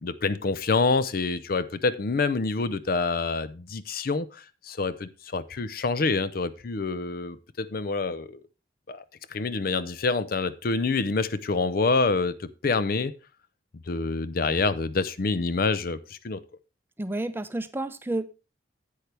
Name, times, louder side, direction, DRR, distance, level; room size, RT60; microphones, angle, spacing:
voice 1, 0.0-8.4 8.9-9.0 9.3-13.1 13.9-16.4, left 3 dB, 55° left, 0.6 m, -27 dB
voice 2, 17.0-18.3, right 2 dB, 10° right, 0.6 m, -30 dB
10.5 x 8.3 x 3.3 m
head